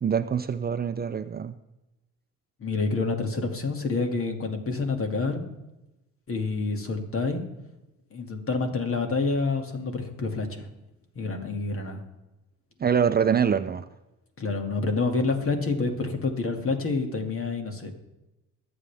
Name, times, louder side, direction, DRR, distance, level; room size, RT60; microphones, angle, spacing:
voice 1, 0.0-1.6 12.8-13.8, right 7 dB, 30° right, 11 dB, 0.6 m, -24 dB
voice 2, 2.6-5.4 6.3-7.4 8.1-10.7 11.2-12.0 14.4-17.9, left 3 dB, 45° left, 4 dB, 2.4 m, -28 dB
23.0 x 8.1 x 3.5 m, 0.98 s
cardioid pair, 90°, 30 cm